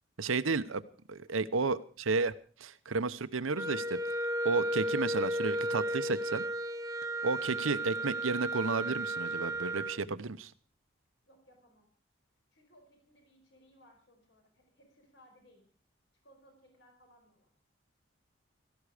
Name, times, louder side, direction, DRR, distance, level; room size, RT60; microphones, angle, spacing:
voice 1, 0.2-0.8 1.1-2.3 2.6-4.0 4.4-6.4 7.2-10.5, right 3 dB, 85° right, 13 dB, 0.9 m, -32 dB
Wind instrument woodwind instrument, 3.5-10.0, right 1 dB, 15° right, 0.6 m, -34 dB
voice 2, 11.2-11.9 12.5-15.7 16.2-17.5, equal, 60° left, 3 dB, 5.0 m, -63 dB
17.0 x 14.0 x 5.0 m, 0.42 s
head